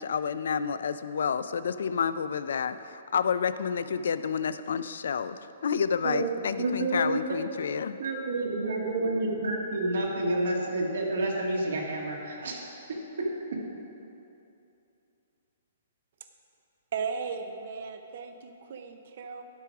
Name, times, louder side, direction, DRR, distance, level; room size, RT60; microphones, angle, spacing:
voice 1, 0.0-8.0, left 6 dB, 70° left, 12 dB, 0.3 m, -29 dB
voice 2, 6.0-7.4 8.0-12.6 12.9-13.3, right 2 dB, 75° right, -1 dB, 1.8 m, -29 dB
voice 3, 16.9-19.4, right 5 dB, 50° right, 7 dB, 0.5 m, -36 dB
11.5 x 4.7 x 5.9 m, 2.7 s
hypercardioid pair, 170°, 0 cm